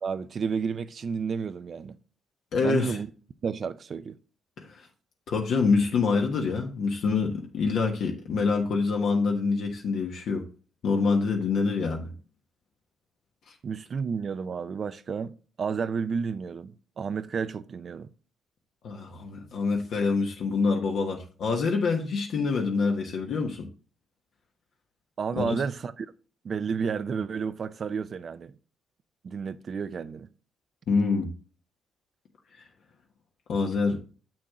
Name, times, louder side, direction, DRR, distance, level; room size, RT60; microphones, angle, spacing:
voice 1, 0.0-2.0 2.6-3.1 3.4-4.2 13.6-18.1 25.2-26.1 26.4-28.5 29.2-30.3, right 6 dB, 50° right, 0.5 m, -31 dB
voice 2, 2.5-3.0 4.6-4.9 5.3-10.4 10.8-12.1 18.8-23.7 25.4-25.6 30.9-31.3 33.5-34.0, left 4 dB, 70° left, 1.3 m, -26 dB
7.5 x 6.0 x 3.7 m
cardioid pair, 90°, 0 cm